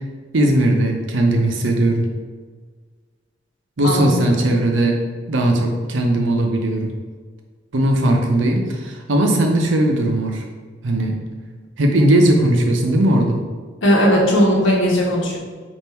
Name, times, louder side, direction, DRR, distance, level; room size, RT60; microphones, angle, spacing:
voice 1, 0.3-2.1 3.8-5.0 5.3-6.9 7.7-10.4 10.8-11.2 11.8-13.4, right 1 dB, 80° right, 2 dB, 0.6 m, -18 dB
voice 2, 3.8-4.4 13.8-15.4, equal, 85° left, -2 dB, 1.0 m, -17 dB
3.6 x 2.5 x 4.3 m, 1.5 s
head